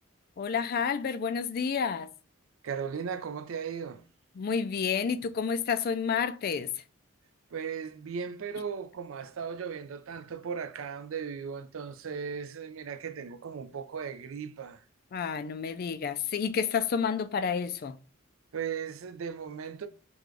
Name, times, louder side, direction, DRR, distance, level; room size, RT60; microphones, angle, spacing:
voice 1, 0.4-2.1 4.4-6.7 15.1-18.0, left 6 dB, 45° left, 0.3 m, -30 dB
voice 2, 2.6-4.0 7.5-14.8 18.5-19.9, right 6 dB, 75° right, 0.4 m, -37 dB
4.8 x 2.3 x 3.7 m
head